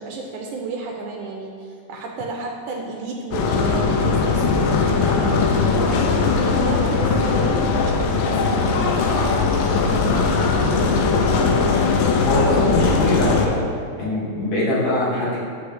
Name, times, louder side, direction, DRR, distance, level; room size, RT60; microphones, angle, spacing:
voice 1, 0.0-10.8, right 4 dB, 75° right, 0 dB, 2.0 m, -32 dB
sound 1, 3.3-13.5, left 4 dB, 90° left, 2.3 m, -19 dB
voice 2, 12.2-13.6 14.0-15.4, left 2 dB, 60° left, -7 dB, 2.5 m, -22 dB
9.8 x 3.3 x 6.4 m, 2.2 s
omnidirectional pair, 3.9 m